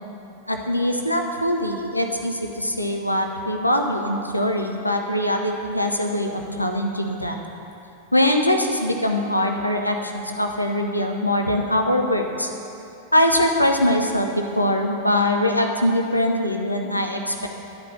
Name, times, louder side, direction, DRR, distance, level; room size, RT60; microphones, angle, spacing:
voice 1, 0.5-7.4 8.1-12.5 13.1-17.5, left 1 dB, 85° left, 3 dB, 0.6 m, -22 dB
10.5 x 5.2 x 6.9 m, 2.8 s
figure-of-eight pair, 90°, 0 cm